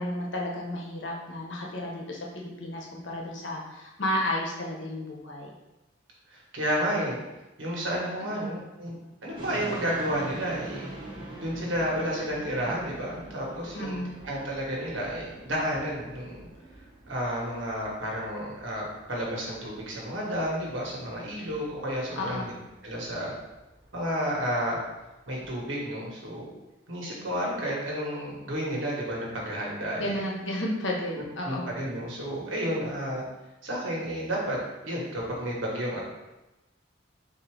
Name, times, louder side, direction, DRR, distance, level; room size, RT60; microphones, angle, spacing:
voice 1, 0.0-5.5 8.3-8.5 13.7-14.1 22.2-22.5 30.0-31.8, left 1 dB, 75° left, -1 dB, 0.9 m, -32 dB
voice 2, 6.3-7.2 7.6-8.9 9.2-10.9 11.4-16.4 17.1-22.5 22.8-23.3 23.9-24.8 25.3-26.5 26.9-30.2 31.1-33.2 33.6-34.6 34.8-36.0, equal, 80° right, -3 dB, 1.3 m, -31 dB
sound 1, 9.3-25.6, right 1 dB, 25° right, 0.8 m, -45 dB
3.9 x 2.7 x 4.7 m, 1.0 s
head